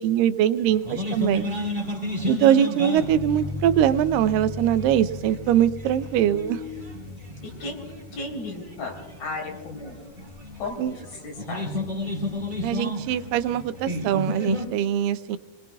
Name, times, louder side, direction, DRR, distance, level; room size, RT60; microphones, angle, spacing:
voice 1, 0.0-1.5 2.3-6.6 10.8-10.9 12.6-15.4, right 10 dB, 85° right, 13 dB, 2.3 m, -22 dB
sound 1, 0.6-14.7, left 1 dB, 15° right, 2.4 m, -33 dB
sound 2, 3.0-8.5, left 4 dB, 15° left, 3.0 m, -36 dB
voice 2, 7.4-7.8 8.1-10.0 10.6-11.7, left 2 dB, 80° left, 1 dB, 5.4 m, -35 dB
27.0 x 20.5 x 2.3 m, 1.3 s
omnidirectional pair, 3.9 m